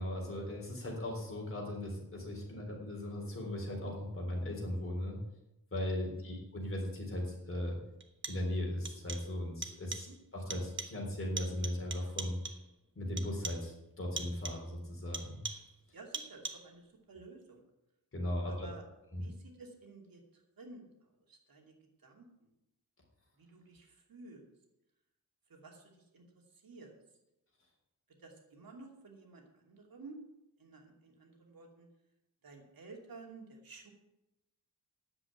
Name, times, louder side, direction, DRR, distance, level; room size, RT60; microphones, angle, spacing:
voice 1, 0.0-5.2 5.7-7.8 8.3-10.1 10.3-12.4 13.0-15.4 18.1-18.7 19.1-19.2, left 1 dB, 35° left, -1 dB, 3.9 m, -37 dB
sound 1, 7.0-7.1 8.0-8.6 8.8-9.4 9.6-10.2 10.5-11.1 11.4-12.7 13.2-13.7 14.2-14.7 15.1-15.8 16.1-16.8, right 4 dB, 35° right, 1.1 m, -43 dB
voice 2, 15.9-17.6 18.5-18.8 19.2-22.5 23.4-24.5 25.5-27.0 28.2-30.2 30.6-31.9 32.4-33.9, right 3 dB, 70° right, 1 dB, 2.7 m, -53 dB
9.6 x 7.8 x 9.1 m, 0.90 s
wide cardioid pair, 155°, 36 cm